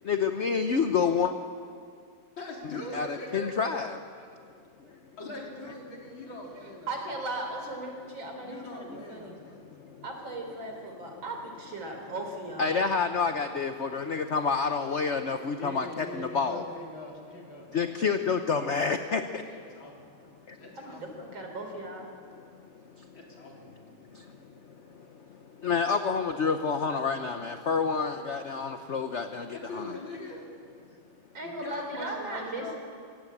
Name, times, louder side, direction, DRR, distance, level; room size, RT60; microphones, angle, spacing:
voice 1, 0.1-1.3 2.6-4.0 12.6-16.6 17.7-19.2 25.6-29.9, left 5 dB, 50° left, 7 dB, 0.9 m, -28 dB
voice 2, 2.4-3.6 5.2-6.9 8.4-9.6 13.3-14.7 15.4-17.9 18.2-18.3 19.5-20.1 20.6-21.0 23.1-24.4 29.4-30.5 31.4-32.7, left 1 dB, 80° left, -1 dB, 4.4 m, -42 dB
voice 3, 6.9-9.3 10.0-12.8 20.7-22.1 31.3-32.7, right 2 dB, 75° right, 2 dB, 4.7 m, -37 dB
25.5 x 16.0 x 8.7 m, 2.3 s
omnidirectional pair, 2.1 m